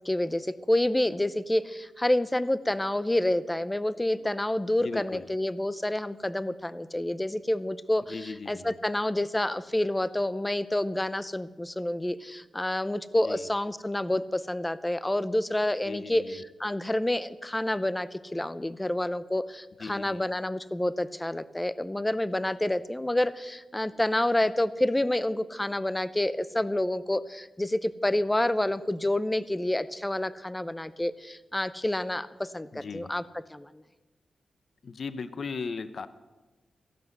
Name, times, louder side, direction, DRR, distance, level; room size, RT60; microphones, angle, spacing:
voice 1, 0.0-33.2 33.5-33.7, left 1 dB, 10° left, 16 dB, 0.5 m, -28 dB
voice 2, 4.8-5.2 8.1-8.7 13.2-13.4 15.8-16.4 19.8-20.2 32.7-33.1 34.8-36.1, left 5 dB, 50° left, 13 dB, 0.7 m, -37 dB
15.0 x 11.0 x 8.0 m, 1.2 s
wide cardioid pair, 160°, 0 cm